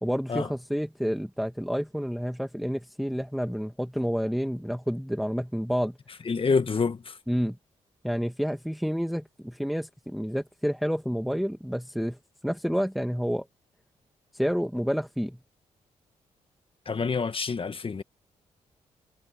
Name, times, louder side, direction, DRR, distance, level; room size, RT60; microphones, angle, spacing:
voice 1, 0.0-6.0 7.3-7.6 8.0-12.2 12.4-13.5 14.3-15.4, equal, ahead, 2.2 m, -29 dB
voice 2, 6.2-7.2 16.8-18.0, left 5 dB, 40° left, 1.6 m, -27 dB
supercardioid pair, 55°, 13 cm